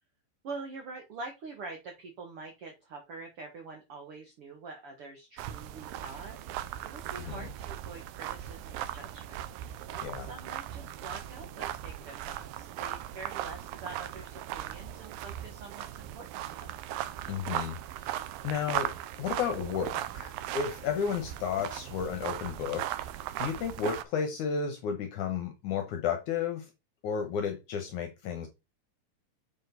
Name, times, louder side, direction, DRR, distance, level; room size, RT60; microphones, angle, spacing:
voice 1, 0.4-16.8, right 3 dB, 50° right, 1.9 m, -45 dB
sound 1, 5.4-24.0, right 12 dB, 85° right, 2.5 m, -38 dB
voice 2, 7.2-7.5 10.0-10.3 17.3-18.9 19.2-22.9 23.4-26.7 27.0-28.5, left 7 dB, 70° left, 2.2 m, -33 dB
7.3 x 6.3 x 4.0 m
omnidirectional pair, 4.1 m